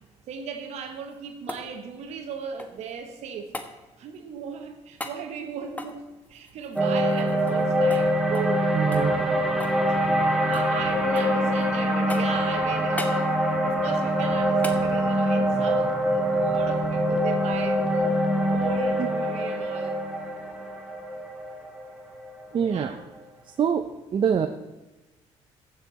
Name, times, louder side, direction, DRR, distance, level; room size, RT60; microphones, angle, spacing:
voice 1, 0.3-3.5 4.0-6.0 6.3-8.9 9.9-18.2 18.5-20.0 22.7-23.0, right 6 dB, 75° right, 5 dB, 1.4 m, -37 dB
sound 1, 0.9-2.9 3.5-3.7 5.0-5.2 5.7-7.7 7.9-8.1 8.3-8.6 8.9-9.8 10.1-10.7 11.2-11.7 12.1-12.5 13.0-13.2 14.6-14.8 17.2-17.3, left 2 dB, 15° left, 1.1 m, -38 dB
sound 2, 6.8-23.0, equal, ahead, 1.6 m, -24 dB
voice 2, 8.7-9.2 22.5-23.0 23.6-24.5, right 7 dB, 45° right, 7 dB, 0.6 m, -24 dB
14.5 x 6.9 x 4.1 m, 1.1 s
cardioid pair, 100°, 12 cm